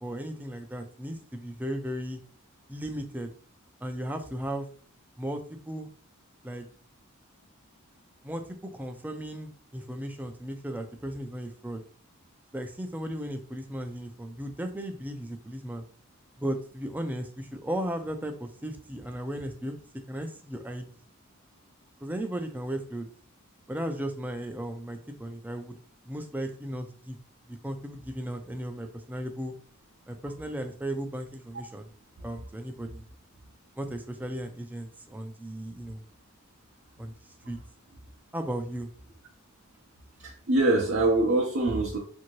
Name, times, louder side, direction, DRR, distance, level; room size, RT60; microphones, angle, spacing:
voice 1, 0.0-2.2 2.7-3.3 3.8-4.7 5.2-5.9 6.4-6.6 8.2-11.8 12.5-15.8 16.4-19.8 20.1-20.9 22.0-23.1 23.7-25.8 26.1-27.2 27.6-29.5 30.1-31.9 32.2-33.0 33.8-36.0 37.0-37.1 37.5-37.6 38.3-38.9, right 1 dB, 10° right, 5 dB, 0.4 m, -35 dB
voice 2, 40.2-42.0, right 2 dB, 60° right, -1 dB, 0.6 m, -24 dB
2.7 x 2.7 x 2.9 m, 0.43 s
head